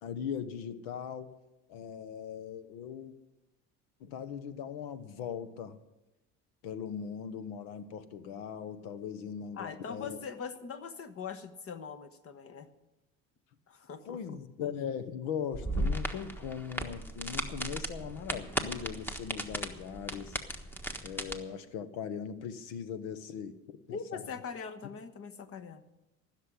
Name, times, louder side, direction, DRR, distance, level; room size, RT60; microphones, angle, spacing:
voice 1, 0.0-1.3 1.7-3.1 4.0-5.8 6.6-10.2 14.0-20.4 21.0-24.2, left 7 dB, 90° left, 13 dB, 1.2 m, -39 dB
voice 2, 9.6-12.7 13.7-14.4 23.9-25.8, left 6 dB, 45° left, 10 dB, 1.4 m, -42 dB
sound 1, 15.5-21.3, right 1 dB, 5° left, 1.3 m, -36 dB
15.0 x 6.6 x 9.9 m, 0.99 s
supercardioid pair, 100°, 33 cm